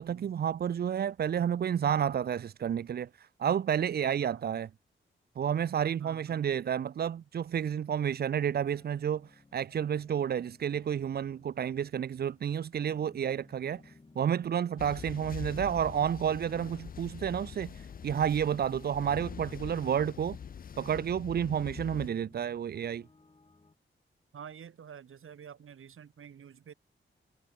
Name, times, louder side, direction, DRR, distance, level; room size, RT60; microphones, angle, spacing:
voice 1, 0.0-4.7 5.4-20.4 20.8-23.1, right 8 dB, 50° right, 0.4 m, -31 dB
voice 2, 6.0-6.9 24.3-26.7, right 8 dB, 90° right, 3.3 m, -49 dB
sound 1, 7.7-23.8, left 3 dB, 25° left, 7.9 m, -61 dB
sound 2, 14.8-22.1, left 7 dB, 45° left, 0.5 m, -44 dB
wide cardioid pair, 170°, 21 cm